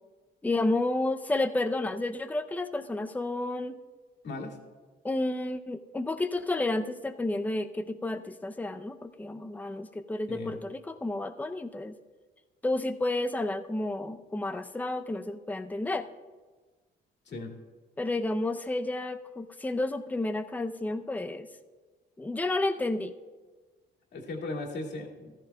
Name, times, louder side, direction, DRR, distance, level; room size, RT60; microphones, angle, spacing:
voice 1, 0.4-3.8 5.0-11.9 12.6-16.1 18.0-21.5 22.2-23.1, left 2 dB, 10° left, 8 dB, 0.6 m, -31 dB
voice 2, 4.2-4.6 10.3-10.5 17.3-17.5 24.1-25.3, left 2 dB, 60° left, 1 dB, 2.2 m, -37 dB
14.5 x 13.5 x 2.3 m, 1.3 s
cardioid pair, 90°, 20 cm